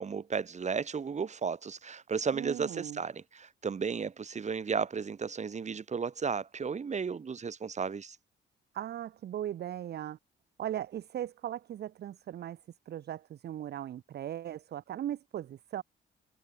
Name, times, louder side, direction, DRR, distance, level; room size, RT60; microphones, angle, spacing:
voice 1, 0.0-8.2, right 6 dB, 35° right, 1.7 m, -34 dB
voice 2, 2.3-3.0 8.7-10.2 10.6-15.8, right 11 dB, 55° right, 0.7 m, -38 dB
cardioid pair, 90°, 20 cm